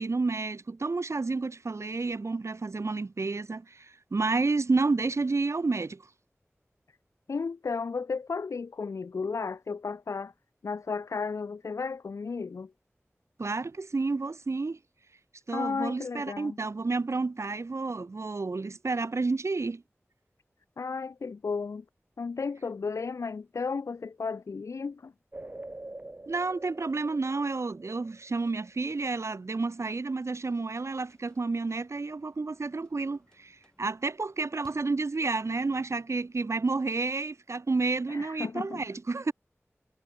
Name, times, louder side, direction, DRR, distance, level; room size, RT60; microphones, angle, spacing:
voice 1, 0.0-6.0 13.4-14.8 15.5-19.8 26.3-39.3, right 3 dB, 70° right, 1.0 m, -30 dB
voice 2, 7.3-10.3 10.6-12.7 15.5-16.6 20.8-21.8 22.2-25.1 38.1-38.8, left 4 dB, 85° left, 0.3 m, -34 dB
sound 1, 25.3-28.9, right 2 dB, 35° right, 1.9 m, -45 dB
sound 2, 30.8-36.8, left 1 dB, 15° left, 6.9 m, -65 dB
wide cardioid pair, 65°, 5 cm